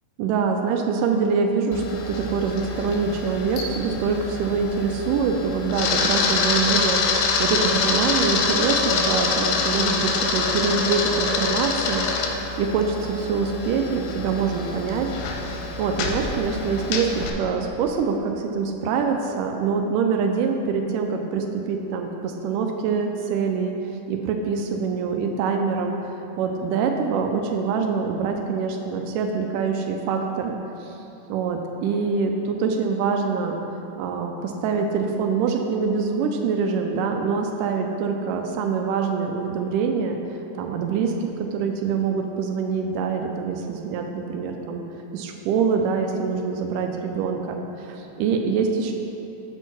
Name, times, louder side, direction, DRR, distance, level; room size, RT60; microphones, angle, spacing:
voice 1, 0.2-15.1 15.8-23.7 24.1-26.0 26.4-30.9 31.3-33.6 34.0-40.2 40.6-44.8 45.1-48.9, right 5 dB, 85° right, 3 dB, 2.1 m, -25 dB
Camera, 1.7-17.3, left 4 dB, 90° left, 2.3 m, -25 dB
6.9 x 4.4 x 6.0 m, 3.0 s
omnidirectional pair, 3.7 m